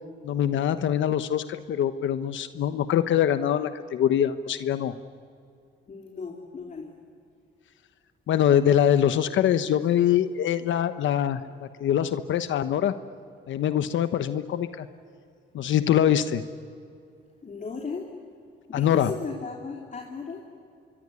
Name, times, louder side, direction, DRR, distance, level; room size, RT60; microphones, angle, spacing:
voice 1, 0.2-4.9 8.3-12.9 13.5-14.9 15.5-16.4 18.7-19.1, left 10 dB, 75° left, 11 dB, 1.2 m, -24 dB
voice 2, 5.9-6.9 17.4-18.1 18.7-20.4, left 4 dB, 40° left, 1 dB, 3.6 m, -36 dB
26.0 x 23.0 x 9.9 m, 2.4 s
cardioid pair, 90°, 20 cm